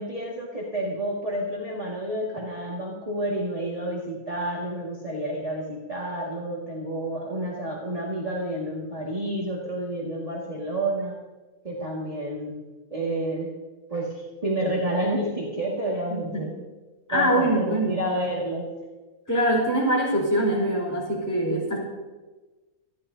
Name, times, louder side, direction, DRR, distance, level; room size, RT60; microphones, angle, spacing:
voice 1, 0.0-11.2 11.6-12.6 12.9-13.5 13.9-16.5 17.1-18.6, right 1 dB, 25° right, -5 dB, 2.2 m, -29 dB
voice 2, 16.1-16.4 17.1-18.0 19.3-21.8, right 1 dB, 10° left, -4 dB, 4.7 m, -23 dB
27.5 x 12.0 x 2.8 m, 1.2 s
omnidirectional pair, 1.6 m